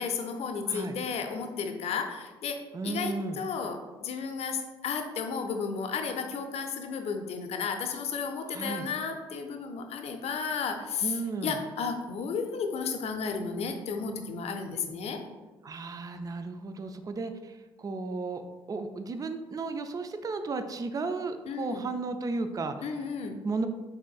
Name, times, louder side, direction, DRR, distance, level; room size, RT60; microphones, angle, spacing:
voice 1, 0.0-15.2 21.5-21.8 22.8-23.4, left 5 dB, 55° left, 5 dB, 0.6 m, -33 dB
voice 2, 2.7-3.4 8.5-8.9 11.0-11.6 15.6-18.4 18.7-22.8 23.4-23.7, right 3 dB, 30° right, 8 dB, 0.4 m, -34 dB
4.8 x 3.7 x 2.3 m, 1.2 s
hypercardioid pair, 50°, 13 cm